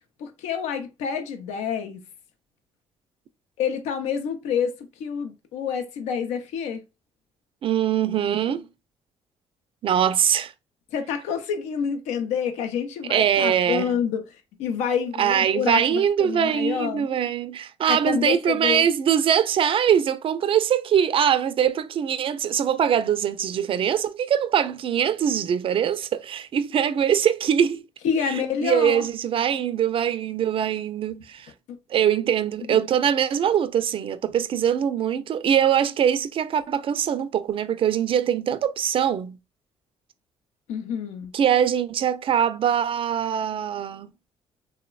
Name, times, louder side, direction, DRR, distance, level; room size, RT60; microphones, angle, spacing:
voice 1, 0.2-2.0 3.6-6.8 10.9-14.2 14.6-17.1 17.9-18.8 28.0-29.0 32.7-32.8 40.7-41.3, left 7 dB, 80° left, 0.5 m, -28 dB
voice 2, 7.6-8.7 9.8-10.5 13.1-14.0 15.2-27.9 28.2-31.5 31.9-39.4 41.3-44.1, right 9 dB, 50° right, 0.4 m, -22 dB
3.0 x 2.1 x 2.3 m
supercardioid pair, 65°, 12 cm